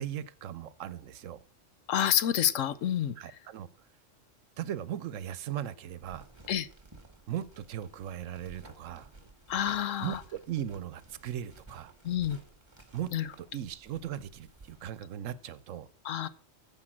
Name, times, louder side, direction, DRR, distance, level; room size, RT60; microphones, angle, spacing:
voice 1, 0.0-1.4 3.2-3.7 4.6-6.3 7.3-9.1 10.0-11.9 12.9-15.9, right 10 dB, 80° right, 17 dB, 1.1 m, -38 dB
voice 2, 1.9-3.1 6.5-6.7 9.5-10.2 12.0-12.4 13.1-13.3 16.0-16.3, left 10 dB, 85° left, 15 dB, 1.1 m, -28 dB
sound 1, 5.9-14.9, right 3 dB, 20° right, 1.8 m, -55 dB
15.0 x 5.3 x 6.1 m, 0.43 s
omnidirectional pair, 1.3 m